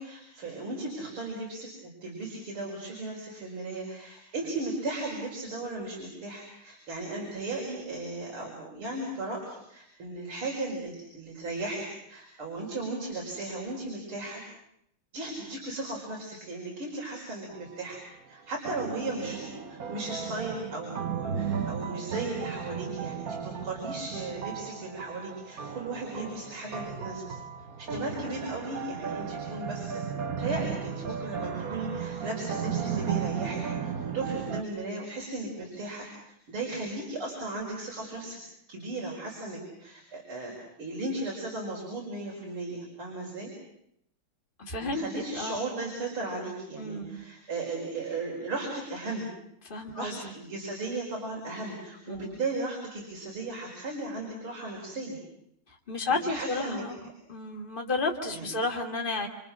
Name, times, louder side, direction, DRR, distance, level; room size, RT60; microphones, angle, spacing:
voice 1, 0.0-14.4 15.1-18.0 18.3-27.2 27.8-30.0 30.4-38.4 38.7-40.5 40.8-43.5 44.8-49.3 49.7-55.2 56.2-56.8 58.3-58.5, right 2 dB, 85° right, -1 dB, 6.0 m, -36 dB
sound 1, 17.5-18.0 18.6-34.6, right 7 dB, 50° right, 1.6 m, -35 dB
voice 2, 44.6-45.6 46.8-47.2 49.6-50.3 52.1-52.3 55.7-57.0 57.3-59.3, left 3 dB, 25° left, 0 dB, 2.9 m, -32 dB
29.0 x 27.5 x 6.3 m, 0.76 s
omnidirectional pair, 2.3 m